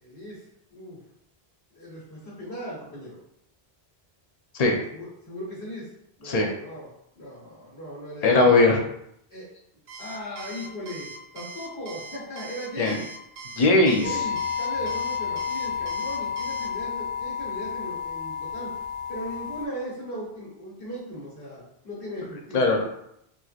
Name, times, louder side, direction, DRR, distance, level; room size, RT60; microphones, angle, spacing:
voice 1, 0.0-1.0 1.7-3.2 4.9-5.9 6.2-6.9 7.1-8.4 9.3-9.5 10.0-13.1 14.0-18.7 19.1-22.7, equal, 75° left, -8 dB, 1.5 m, -38 dB
voice 2, 8.2-8.8 12.8-13.0 13.6-14.2 22.5-22.9, left 2 dB, 45° left, 2 dB, 0.6 m, -19 dB
Alarm, 9.9-16.7, right 3 dB, 85° right, 0.9 m, -41 dB
sound 1, 14.0-19.7, left 7 dB, 35° right, 0.6 m, -31 dB
4.4 x 2.6 x 2.4 m, 0.75 s
omnidirectional pair, 1.0 m